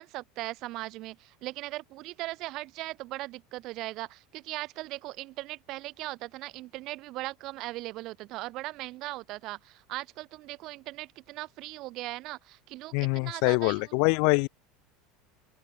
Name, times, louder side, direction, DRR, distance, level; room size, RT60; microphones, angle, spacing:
voice 1, 0.0-13.9, right 18 dB, 45° right, 5.9 m, -39 dB
voice 2, 12.9-14.5, left 40 dB or more, 60° left, 0.3 m, -24 dB
open air
supercardioid pair, 155°, 0 cm